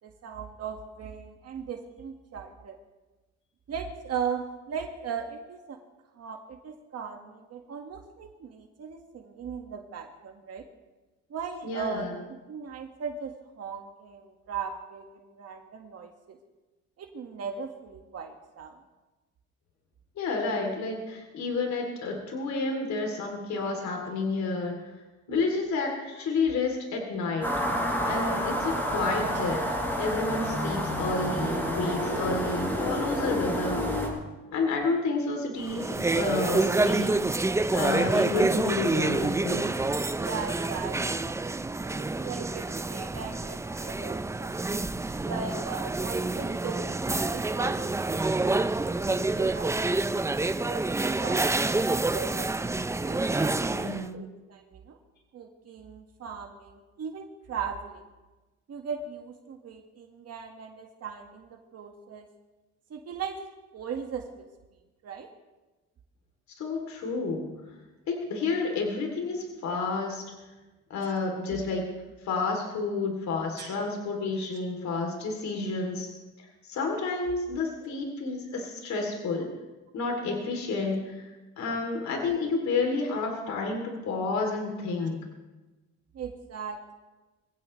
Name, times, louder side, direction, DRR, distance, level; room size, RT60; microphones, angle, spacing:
voice 1, 0.0-2.8 3.7-5.8 6.1-10.6 11.3-12.1 12.5-16.4 17.0-18.8 25.3-25.5 37.0-37.2 40.2-41.4 41.8-42.6 42.9-44.5 45.2-46.9 47.2-52.5 53.0-55.0 55.3-58.0 58.7-62.3 62.9-63.4 63.7-64.4 65.0-65.3 71.0-71.1 71.5-71.8 73.6-73.7 85.0-85.1 86.1-86.9, right 6 dB, 55° right, 3 dB, 1.8 m, -38 dB
voice 2, 11.6-12.1 20.2-24.8 25.3-27.6 28.0-29.7 30.0-33.8 34.5-37.1 37.7-39.7 53.7-54.2 66.6-67.5 68.1-70.2 70.9-71.9 72.2-76.1 76.4-79.5 79.9-85.2, left 3 dB, 70° left, 2 dB, 3.2 m, -30 dB
sound 1, 27.4-34.1, equal, 5° left, 6.7 m, -29 dB
sound 2, 35.6-54.1, right 2 dB, 10° right, 0.5 m, -28 dB
23.0 x 16.0 x 3.3 m, 1.2 s
cardioid pair, 110°, 29 cm